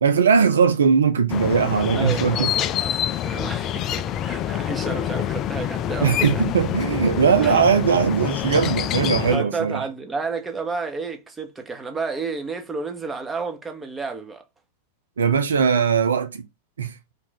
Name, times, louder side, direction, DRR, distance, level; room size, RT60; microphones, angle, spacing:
voice 1, 0.0-2.5 6.0-9.8 15.2-16.4 16.8-16.9, right 6 dB, 75° right, 0.4 m, -19 dB
sound 1, 1.3-9.4, left 11 dB, 35° left, 0.3 m, -26 dB
voice 2, 1.9-6.3 7.4-7.7 9.3-14.4, right 4 dB, 15° right, 0.9 m, -31 dB
3.4 x 2.4 x 3.9 m
figure-of-eight pair, 95°, 0 cm